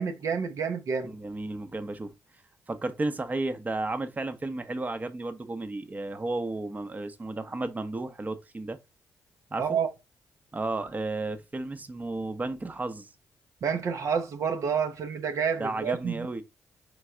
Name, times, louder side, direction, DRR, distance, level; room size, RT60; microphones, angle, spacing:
voice 1, 0.0-1.1 9.6-9.9 13.6-16.3, right 6 dB, 60° right, 0.7 m, -29 dB
voice 2, 1.0-2.1 2.7-8.8 9.5-9.8 10.5-13.1 15.6-16.4, right 2 dB, 25° right, 0.7 m, -33 dB
4.0 x 3.3 x 3.6 m
supercardioid pair, 55°, 6 cm